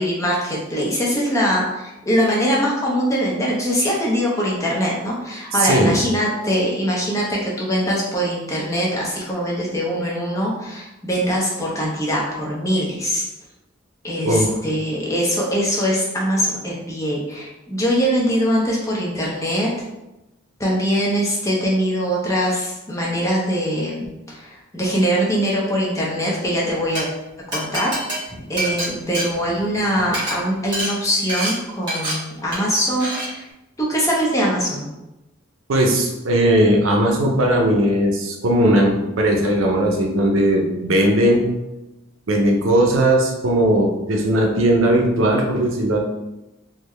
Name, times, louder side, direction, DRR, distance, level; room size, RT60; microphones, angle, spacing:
voice 1, 0.0-13.2 14.0-19.7 20.6-27.1 27.5-27.9 28.5-33.5 33.8-34.9, equal, 15° left, -4 dB, 0.7 m, -22 dB
voice 2, 5.6-6.0 14.2-14.5 35.7-41.6 42.3-46.0, right 1 dB, 85° right, 1 dB, 0.6 m, -18 dB
Glass, 26.9-27.0 27.5-29.8 30.1-30.3 30.7-30.9 31.3-31.5 31.9-32.1 32.5-32.7 33.0-33.3, right 1 dB, 20° right, 1.3 m, -26 dB
3.6 x 2.2 x 3.1 m, 0.96 s
head